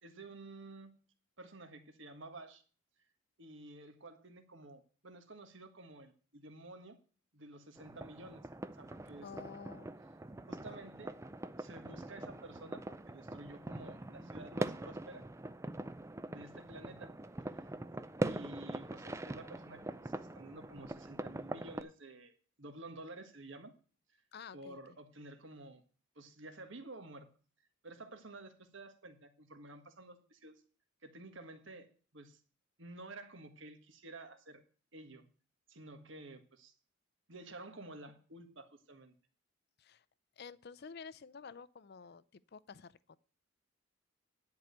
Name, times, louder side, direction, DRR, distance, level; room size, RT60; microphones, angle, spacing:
voice 1, 0.0-0.9 1.4-2.6 3.4-7.0 7.3-8.5 8.8-9.3 10.5-11.2 11.6-15.2 16.3-17.2 17.5-17.7 18.2-23.7 24.5-25.8 26.1-27.3 27.8-30.5 31.0-31.9 32.1-32.4 32.8-34.6 34.9-35.2 35.7-36.7 37.3-39.1, right 2 dB, 60° right, 1.6 m, -51 dB
sound 1, 7.8-21.8, right 2 dB, 15° right, 0.4 m, -43 dB
voice 2, 9.2-10.0 24.3-25.0 39.8-40.1 40.4-43.2, left 5 dB, 50° left, 0.5 m, -51 dB
10.5 x 4.8 x 8.0 m
head